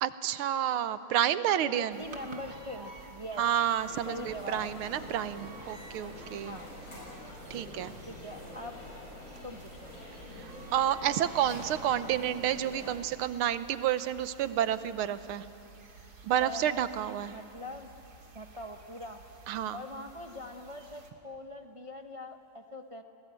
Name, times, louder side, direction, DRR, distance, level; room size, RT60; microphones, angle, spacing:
voice 1, 0.0-2.0 3.4-6.6 7.5-7.9 10.4-15.5 16.2-17.3 19.5-19.8, right 10 dB, 90° right, 13 dB, 1.7 m, -30 dB
voice 2, 1.6-3.4 4.1-4.7 6.4-6.7 8.1-8.8 9.4-9.9 16.4-16.8 17.3-17.9 18.3-19.2 19.7-23.0, left 1 dB, 25° right, 4 dB, 0.6 m, -42 dB
sound 1, 1.9-21.1, right 3 dB, 50° right, 2.5 m, -52 dB
sound 2, 3.8-12.9, left 1 dB, 75° left, 6.1 m, -46 dB
28.0 x 19.5 x 9.0 m, 2.6 s
omnidirectional pair, 2.3 m